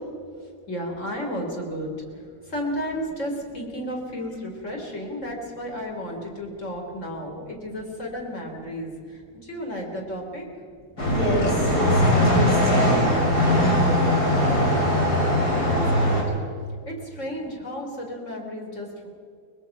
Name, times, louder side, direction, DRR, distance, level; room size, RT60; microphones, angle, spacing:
voice 1, 0.7-10.5 14.5-16.2 16.9-19.1, equal, 50° left, 0 dB, 4.0 m, -33 dB
sound 1, 11.0-16.2, left 1 dB, 70° left, 4.5 m, -20 dB
voice 2, 11.1-13.1, right 1 dB, 5° left, -4 dB, 3.5 m, -28 dB
23.0 x 20.5 x 6.0 m, 2.2 s
omnidirectional pair, 1.7 m